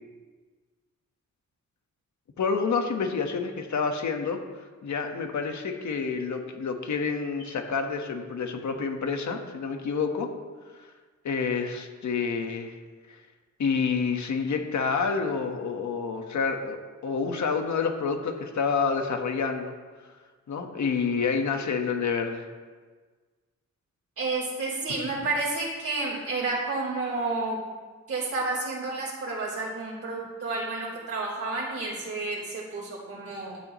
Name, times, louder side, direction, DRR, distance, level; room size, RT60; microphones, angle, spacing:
voice 1, 2.4-4.4 4.8-10.3 11.2-12.7 13.6-19.7 20.5-22.4, left 5 dB, 75° left, 4 dB, 1.4 m, -28 dB
voice 2, 24.2-27.6 28.1-33.6, right 3 dB, 50° right, -6 dB, 3.7 m, -30 dB
16.5 x 12.0 x 3.1 m, 1.4 s
wide cardioid pair, 155°, 29 cm